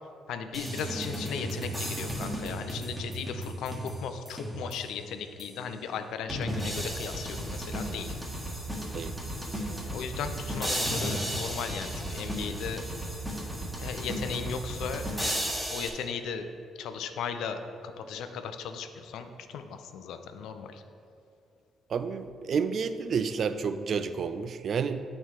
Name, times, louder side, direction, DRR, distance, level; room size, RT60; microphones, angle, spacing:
voice 1, 0.3-8.2 9.9-12.9 13.8-16.5 16.8-20.8, left 6 dB, 80° left, 8 dB, 0.5 m, -37 dB
sound 1, 0.5-5.0 5.4-5.5 6.3-15.9, equal, 10° right, 1.4 m, -34 dB
voice 2, 21.9-25.0, right 6 dB, 55° right, 11 dB, 0.4 m, -30 dB
9.0 x 4.3 x 4.7 m, 2.6 s
cardioid pair, 90°, 0 cm